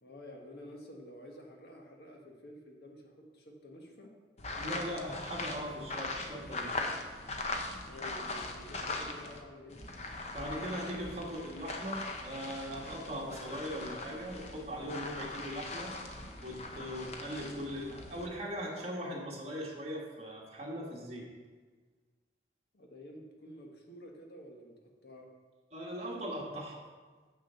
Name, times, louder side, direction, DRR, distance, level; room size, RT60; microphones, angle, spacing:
voice 1, 0.0-4.1 7.9-9.8 22.7-24.7 25.0-25.3, left 1 dB, 65° left, 1 dB, 1.4 m, -50 dB
sound 1, 4.4-9.4 9.7-18.3, left 2 dB, 40° left, 0.8 m, -40 dB
voice 2, 4.6-6.7 10.3-15.9 16.4-21.2 25.7-26.8, equal, 35° right, -3 dB, 1.8 m, -40 dB
7.4 x 6.6 x 5.8 m, 1.4 s
head